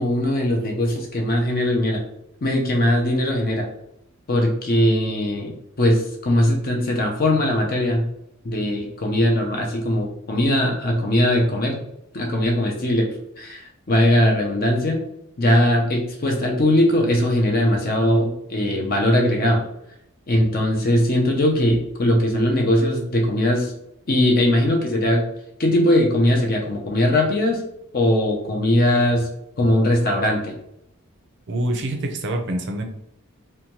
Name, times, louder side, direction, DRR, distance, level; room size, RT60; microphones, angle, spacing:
voice 1, 0.0-2.0 2.4-3.7 4.3-8.0 8.4-11.8 12.1-13.1 13.4-15.0 15.4-19.6 20.3-23.7 24.1-25.2 25.6-27.6 27.9-29.3 29.6-30.5, left 1 dB, 40° left, 1 dB, 0.5 m, -20 dB
voice 2, 31.5-32.8, right 1 dB, 50° right, 4 dB, 0.5 m, -25 dB
2.7 x 2.2 x 2.9 m, 0.78 s
head